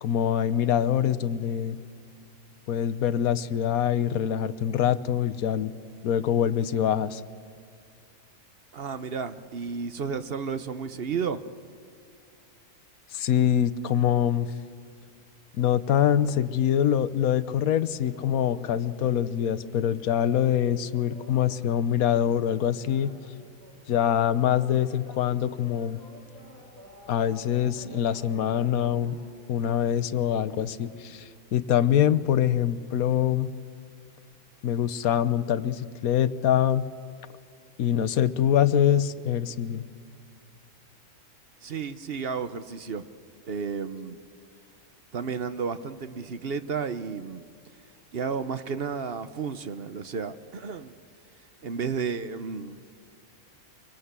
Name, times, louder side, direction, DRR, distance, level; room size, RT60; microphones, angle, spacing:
voice 1, 0.0-1.8 2.7-5.7 6.0-7.2 13.1-14.5 15.6-23.1 23.9-26.0 27.1-29.2 29.5-33.5 34.6-36.8 37.8-39.8, left 9 dB, 75° left, 14 dB, 1.2 m, -24 dB
voice 2, 8.7-11.4 41.6-43.1 43.5-44.2 45.1-47.4 48.1-51.0 51.6-52.8, right 5 dB, 45° right, 11 dB, 0.9 m, -32 dB
sound 1, 17.9-21.6 21.9-24.3 24.6-31.2, left 1 dB, 10° left, 7.0 m, -51 dB
24.5 x 24.0 x 8.2 m, 2.2 s
omnidirectional pair, 1.6 m